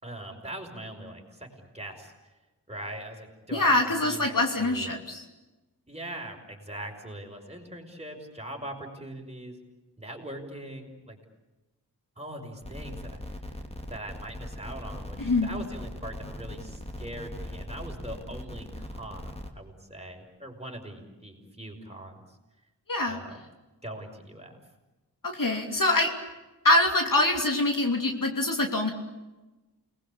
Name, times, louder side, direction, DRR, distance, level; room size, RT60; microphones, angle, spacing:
voice 1, 0.0-2.3 2.7-4.3 4.6-5.0 5.9-9.6 10.0-11.2 12.2-13.2 13.9-22.4 23.1-23.4 23.8-24.6, right 1 dB, 15° right, 1 dB, 5.9 m, -41 dB
voice 2, 3.5-5.2 15.2-15.5 22.9-23.2 25.2-26.1 26.6-28.9, left 2 dB, 55° left, 3 dB, 3.0 m, -24 dB
sound 1, 12.6-19.5, left 1 dB, 15° left, 2.9 m, -40 dB
29.0 x 20.5 x 8.7 m, 1.1 s
wide cardioid pair, 85°, 40 cm